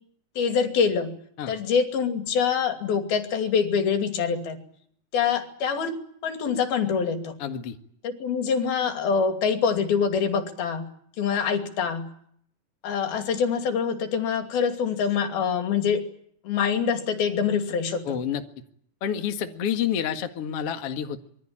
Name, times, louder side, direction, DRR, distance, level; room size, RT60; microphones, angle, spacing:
voice 1, 0.4-1.1 1.5-4.6 5.1-6.0 6.2-7.3 8.0-10.9 11.2-12.1 12.8-16.0 16.4-18.2, left 6 dB, 85° left, 7 dB, 4.6 m, -25 dB
voice 2, 7.4-7.7 18.1-18.4 19.0-21.3, left 8 dB, 45° left, 6 dB, 2.4 m, -29 dB
26.5 x 22.0 x 8.8 m, 0.66 s
omnidirectional pair, 4.2 m